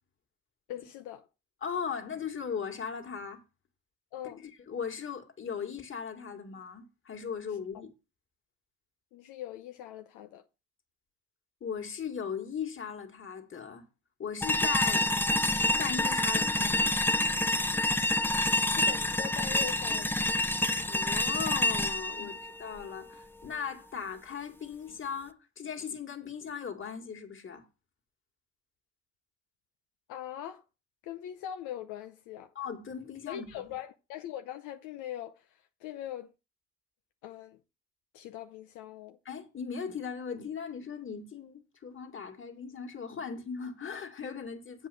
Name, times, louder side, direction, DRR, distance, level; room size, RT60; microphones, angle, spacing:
voice 1, 0.7-1.3 4.1-4.4 9.1-10.5 18.6-20.3 22.2-22.3 30.1-30.6 31.0-32.5 33.3-36.3 37.2-37.6 38.1-39.2, left 11 dB, 85° left, 0.8 m, -41 dB
voice 2, 1.6-3.4 4.2-4.3 4.7-7.9 11.6-13.8 14.2-15.1 15.8-17.0 20.9-27.7 32.6-33.6 39.3-44.9, left 6 dB, 40° left, 2.3 m, -38 dB
sound 1, 14.4-23.5, left 2 dB, 5° left, 0.8 m, -28 dB
7.9 x 5.5 x 7.1 m
supercardioid pair, 70°, 30 cm